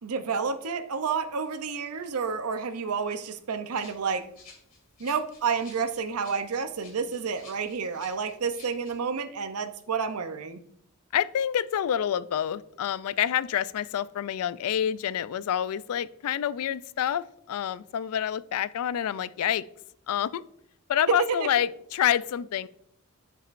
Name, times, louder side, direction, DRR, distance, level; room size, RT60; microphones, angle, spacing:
voice 1, 0.0-4.3 5.0-10.6 21.1-21.5, right 5 dB, 90° right, 10 dB, 0.6 m, -30 dB
Rattle (instrument), 3.7-9.0, left 4 dB, 40° left, 2.6 m, -54 dB
voice 2, 11.1-19.6 20.1-20.4 20.9-22.7, left 9 dB, 80° left, 18 dB, 0.3 m, -27 dB
10.0 x 5.8 x 2.5 m, 0.71 s
head